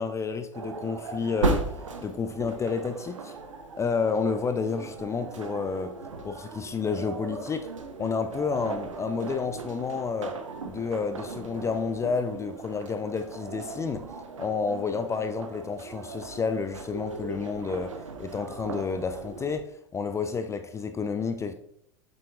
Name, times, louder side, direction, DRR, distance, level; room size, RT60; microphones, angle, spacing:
voice 1, 0.0-1.7 2.0-3.3 3.8-6.0 6.2-7.7 8.0-10.4 10.7-14.1 14.4-21.5, left 5 dB, 15° left, 0.4 m, -30 dB
sound 1, 0.5-19.6, right 3 dB, 75° right, 0.8 m, -37 dB
7.8 x 7.5 x 2.4 m
figure-of-eight pair, 80°, 16 cm